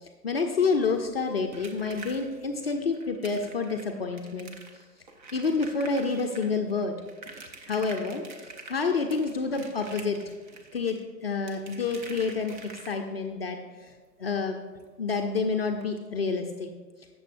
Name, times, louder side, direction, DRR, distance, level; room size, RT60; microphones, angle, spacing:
voice 1, 0.0-4.5 5.3-7.0 7.7-8.2 8.7-10.2 10.7-13.9 14.2-14.6 15.0-16.7, left 4 dB, 40° left, 3 dB, 0.6 m, -28 dB
sound 1, 0.8-13.3 14.8-14.9 15.2-15.3 15.7-15.8, right 3 dB, 30° right, 0.8 m, -47 dB
15.5 x 7.0 x 2.6 m, 1.4 s
figure-of-eight pair, 135°, 49 cm